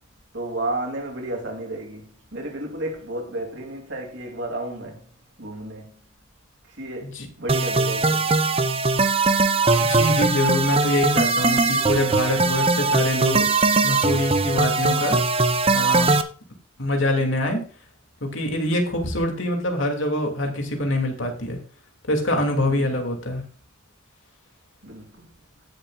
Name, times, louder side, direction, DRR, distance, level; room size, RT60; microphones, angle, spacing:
voice 1, 0.3-5.1 5.4-5.9 6.7-8.5 22.7-23.0 24.8-25.3, right 1 dB, 60° right, 3.1 m, -32 dB
sound 1, 7.5-16.2, right 3 dB, 30° right, 0.8 m, -20 dB
voice 2, 9.8-13.4 13.8-15.2 15.7-16.1 16.8-17.6 18.2-21.6 22.1-23.4, left 1 dB, 70° left, 2.9 m, -24 dB
17.5 x 7.6 x 2.5 m
head